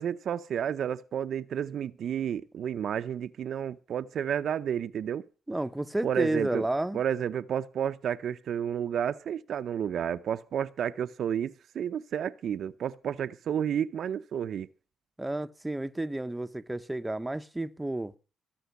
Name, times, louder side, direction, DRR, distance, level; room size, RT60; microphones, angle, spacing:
voice 1, 0.0-5.3 6.0-6.6 6.9-14.7, right 9 dB, 65° right, 0.6 m, -31 dB
voice 2, 5.5-7.0 15.2-18.1, right 1 dB, 10° right, 0.7 m, -31 dB
17.0 x 6.2 x 8.1 m
cardioid pair, 90°, 0 cm